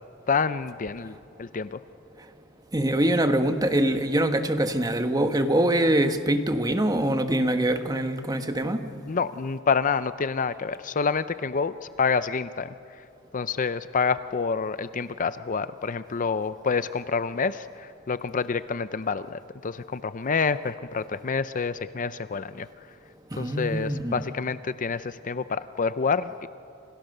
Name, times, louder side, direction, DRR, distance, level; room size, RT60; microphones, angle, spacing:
voice 1, 0.3-1.8 9.1-12.7 13.3-22.7 23.4-26.5, left 5 dB, 40° left, 13 dB, 0.5 m, -28 dB
voice 2, 2.7-8.8 23.3-24.1, right 1 dB, 20° right, 7 dB, 1.4 m, -24 dB
29.0 x 27.5 x 6.7 m, 2.5 s
head